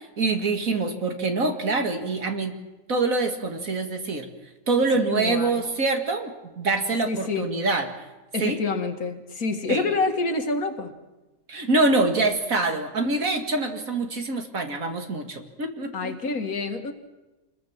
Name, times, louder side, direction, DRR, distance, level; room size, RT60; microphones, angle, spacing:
voice 1, 0.0-2.6 2.9-4.3 4.7-6.3 6.6-7.9 8.4-8.6 9.7-9.9 11.5-16.1, right 3 dB, 60° right, 5 dB, 2.5 m, -25 dB
voice 2, 5.1-5.6 7.1-7.5 8.3-10.9 15.9-16.9, left 3 dB, 65° left, 7 dB, 2.3 m, -27 dB
27.0 x 21.0 x 7.4 m, 1.1 s
omnidirectional pair, 1.7 m